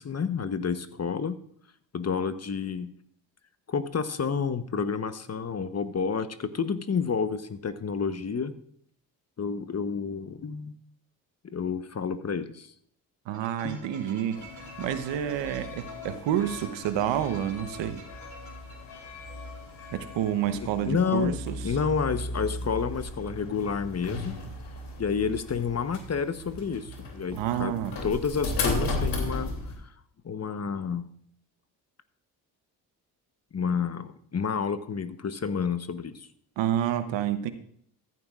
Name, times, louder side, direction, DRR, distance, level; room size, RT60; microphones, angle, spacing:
voice 1, 0.0-1.4 1.9-2.9 3.7-8.5 9.4-10.8 11.5-12.7 13.6-13.8 20.5-20.6 20.9-24.4 25.0-27.8 28.0-29.9 30.2-31.0 33.5-36.3, left 6 dB, 35° left, 12 dB, 1.0 m, -30 dB
sound 1, 13.3-19.8, right 3 dB, 40° right, 2.4 m, -50 dB
voice 2, 13.3-14.4 14.8-18.0 19.9-21.6 27.3-27.9 36.6-37.5, right 10 dB, 70° right, 11 dB, 1.0 m, -29 dB
sound 2, 14.3-29.8, left 2 dB, 60° left, 2.9 m, -36 dB
14.5 x 11.0 x 2.5 m, 0.65 s
hypercardioid pair, 50°, 46 cm